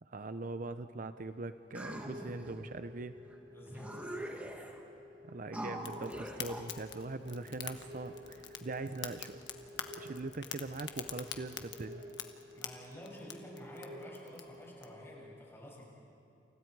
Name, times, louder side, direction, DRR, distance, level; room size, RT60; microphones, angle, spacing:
voice 1, 0.0-3.2 5.3-9.4 10.0-12.0, right 3 dB, 45° right, 11 dB, 0.6 m, -41 dB
sound 1, 1.7-2.6 3.3-3.4 3.7-4.8 5.5-6.7, right 1 dB, 10° right, 1.8 m, -43 dB
sound 2, 1.8-15.3, left 1 dB, 80° right, 3.4 m, -52 dB
voice 2, 3.5-4.2 12.5-15.9, equal, 15° left, -4 dB, 7.0 m, -50 dB
Fire, 5.8-14.9, left 9 dB, 75° left, 1.4 m, -46 dB
29.5 x 29.0 x 4.7 m, 2.8 s
head